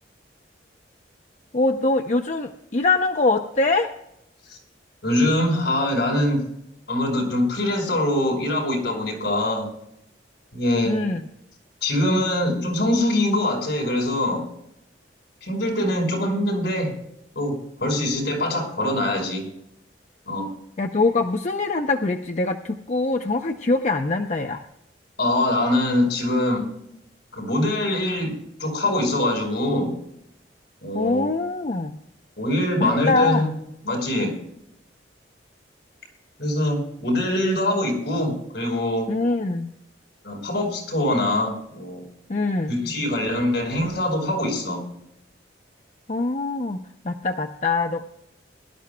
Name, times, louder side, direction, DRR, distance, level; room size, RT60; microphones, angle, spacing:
voice 1, 1.5-3.9 10.9-11.2 20.8-24.7 30.9-32.0 32.8-33.5 39.1-39.7 42.3-42.7 46.1-48.0, left 3 dB, 40° left, 5 dB, 0.7 m, -23 dB
voice 2, 5.0-6.4 6.9-9.7 10.5-11.0 11.8-14.4 15.4-16.9 17.3-17.5 17.8-19.4 20.3-20.5 25.2-26.6 27.3-28.3 28.6-29.9 30.8-31.3 32.4-33.5 33.9-34.3 36.4-39.1 40.2-42.0 42.7-44.8, left 1 dB, 65° left, 0 dB, 5.6 m, -23 dB
22.0 x 12.5 x 2.3 m, 0.80 s
head